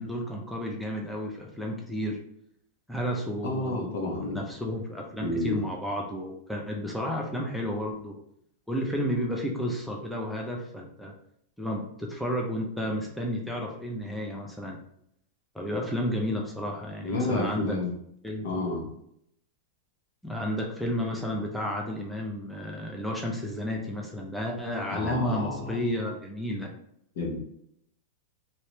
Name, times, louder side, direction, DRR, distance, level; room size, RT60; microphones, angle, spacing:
voice 1, 0.0-2.2 2.9-3.8 4.1-8.2 8.7-11.1 11.6-14.8 15.5-17.8 18.2-18.7 20.2-26.7, equal, ahead, -1 dB, 0.6 m, -32 dB
voice 2, 3.4-4.4 5.2-5.6 17.0-17.9 18.4-18.9 24.9-25.8 27.2-27.4, left 2 dB, 70° left, -1 dB, 1.1 m, -30 dB
3.0 x 2.9 x 3.2 m, 0.72 s
hypercardioid pair, 130°, 0 cm